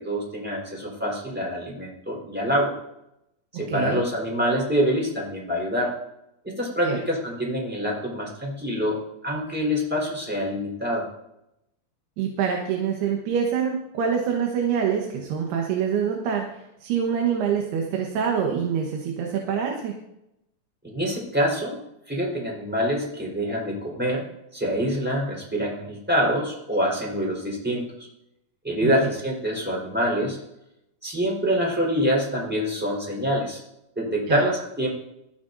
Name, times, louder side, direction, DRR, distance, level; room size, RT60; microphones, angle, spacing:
voice 1, 0.0-2.8 3.5-5.9 6.4-11.1 20.8-21.8 22.1-24.2 24.5-28.1 28.6-30.4 31.0-33.6 34.0-34.9, equal, 5° right, -3 dB, 3.7 m, -26 dB
voice 2, 3.7-4.0 6.8-7.0 12.2-19.9 28.8-28.9 34.3-34.4, right 7 dB, 75° right, 1 dB, 3.3 m, -25 dB
22.0 x 14.0 x 2.7 m, 0.86 s
omnidirectional pair, 4.7 m